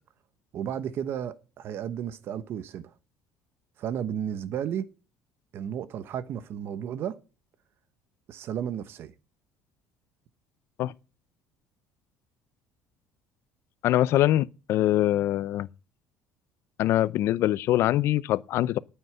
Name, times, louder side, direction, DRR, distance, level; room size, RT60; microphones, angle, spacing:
voice 1, 0.5-2.8 3.8-4.9 5.5-7.2 8.3-9.1, right 9 dB, 50° right, 1.1 m, -33 dB
voice 2, 13.8-15.7 16.8-18.8, left 14 dB, 60° left, 0.6 m, -23 dB
9.3 x 7.9 x 7.9 m
cardioid pair, 130°, 5 cm